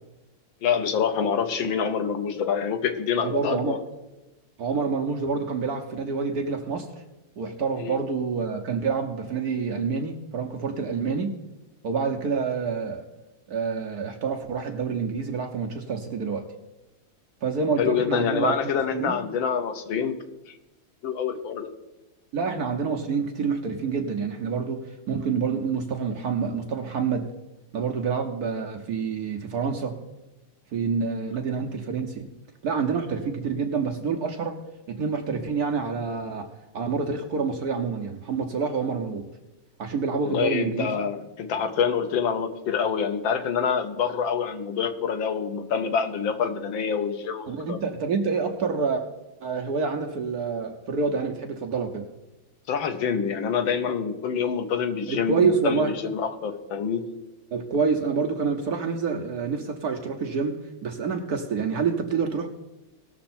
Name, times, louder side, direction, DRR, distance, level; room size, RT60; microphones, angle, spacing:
voice 1, 0.6-3.8 7.8-8.0 17.8-20.2 20.5-20.6 21.0-21.7 40.2-47.8 52.7-57.1, left 7 dB, 70° left, 7 dB, 1.6 m, -26 dB
voice 2, 3.2-3.8 4.6-6.9 7.4-11.3 11.8-13.1 13.5-16.4 17.4-18.5 18.9-19.1 22.3-27.3 27.7-30.0 30.7-32.3 32.6-34.5 34.9-36.5 36.7-39.2 39.8-40.9 47.5-49.0 49.4-52.0 55.1-55.9 57.5-62.5, right 5 dB, 60° right, 3 dB, 1.1 m, -27 dB
18.5 x 6.6 x 4.3 m, 1.0 s
omnidirectional pair, 2.3 m